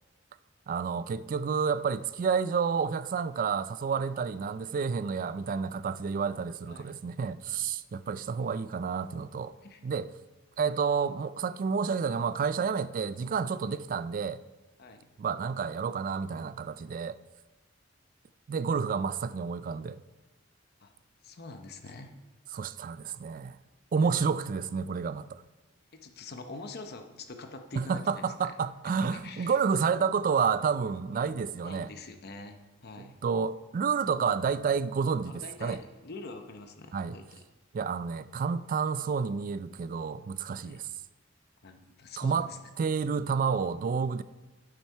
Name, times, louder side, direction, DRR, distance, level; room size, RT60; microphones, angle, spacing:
voice 1, 0.7-9.5 9.8-10.1 10.6-14.4 15.2-17.2 18.5-20.0 22.5-23.6 23.9-25.4 27.7-31.9 33.0-35.8 36.9-37.2 37.7-40.9 42.2-42.5 42.8-44.2, right 6 dB, 45° right, 0.3 m, -30 dB
voice 2, 21.2-22.1 23.9-24.1 25.9-28.5 29.0-29.6 29.8-30.1 31.1-31.2 31.6-33.2 35.3-35.8 36.0-37.4 40.6-40.8 41.6-42.6, left 3 dB, 55° left, 0.8 m, -45 dB
9.0 x 7.4 x 4.4 m
head